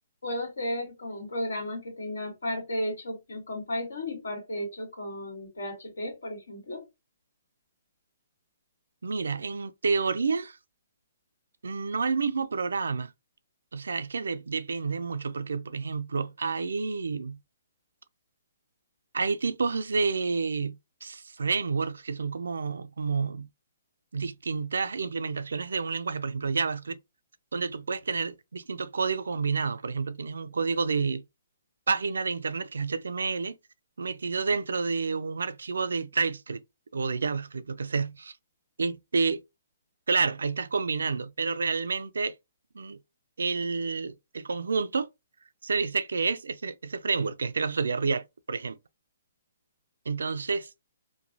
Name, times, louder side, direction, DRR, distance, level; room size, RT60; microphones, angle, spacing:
voice 1, 0.2-6.9, left 1 dB, 85° left, 1.6 m, -34 dB
voice 2, 9.0-10.6 11.6-13.1 13.7-17.4 19.1-23.5 24.1-27.0 27.5-31.2 31.9-33.6 34.0-36.6 36.9-38.3 38.8-39.4 40.1-42.4 42.7-43.0 43.4-45.1 45.6-48.8 50.1-50.7, right 4 dB, 85° right, 0.4 m, -29 dB
3.0 x 2.2 x 2.6 m
hypercardioid pair, 150°, 0 cm